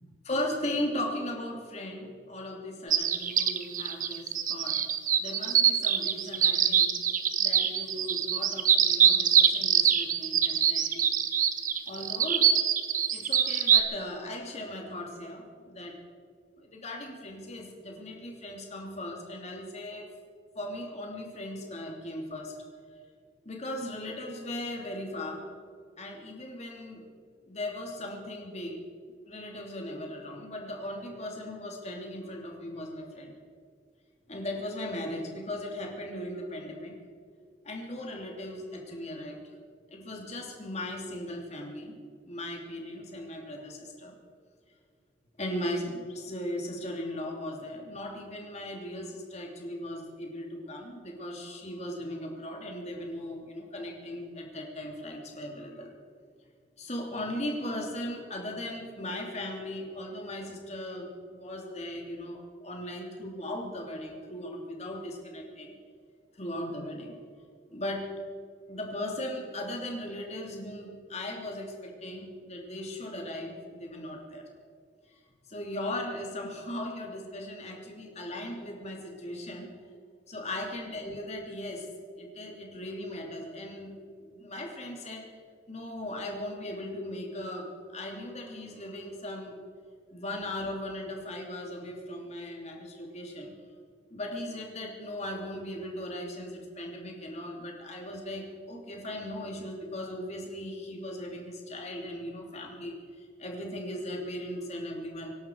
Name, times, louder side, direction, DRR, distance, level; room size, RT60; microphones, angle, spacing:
voice 1, 0.2-4.8 5.2-7.0 7.4-11.1 11.9-12.5 13.1-16.0 16.6-20.1 20.5-22.5 23.4-25.5 26.0-27.1 27.5-28.9 29.2-33.4 34.3-37.0 37.6-39.4 39.9-42.0 42.3-44.2 45.4-55.9 56.8-65.8 66.4-67.2 67.7-68.1 68.7-74.4 75.5-79.7 80.3-81.9 82.2-85.3 85.7-89.6 90.1-93.6 94.1-105.4, left 1 dB, 40° left, 1 dB, 3.0 m, -38 dB
sound 1, 2.9-13.8, right 9 dB, 45° right, 1.0 m, -24 dB
25.5 x 11.5 x 4.8 m, 2.1 s
head